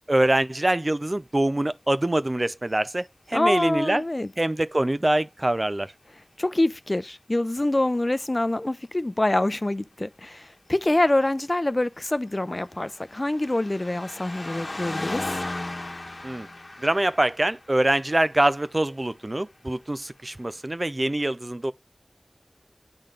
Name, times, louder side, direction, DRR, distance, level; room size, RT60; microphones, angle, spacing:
voice 1, 0.1-4.0 4.4-5.9 16.2-16.5 16.8-21.7, right 1 dB, 45° right, 0.4 m, -24 dB
voice 2, 3.3-4.3 6.4-15.3, left 1 dB, 45° left, 0.5 m, -25 dB
sound 1, 12.2-18.9 19.8-19.9, left 2 dB, 85° left, 1.1 m, -36 dB
8.8 x 3.9 x 5.0 m
wide cardioid pair, 45°, 0 cm